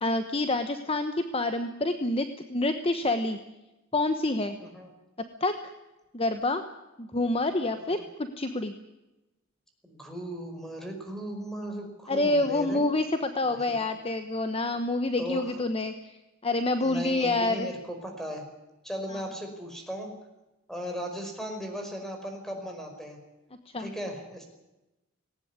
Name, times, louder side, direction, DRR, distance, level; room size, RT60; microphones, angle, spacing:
voice 1, 0.0-3.4 3.9-4.6 5.4-5.6 6.1-6.6 7.0-8.7 12.1-16.1 16.4-17.7 23.7-23.9, left 2 dB, 25° left, 8 dB, 1.1 m, -27 dB
voice 2, 9.8-12.8 13.4-13.6 15.2-15.6 16.8-18.4 18.8-20.1 20.7-23.2 23.8-24.4, equal, ahead, 4 dB, 5.1 m, -37 dB
19.0 x 18.5 x 9.6 m, 0.99 s
head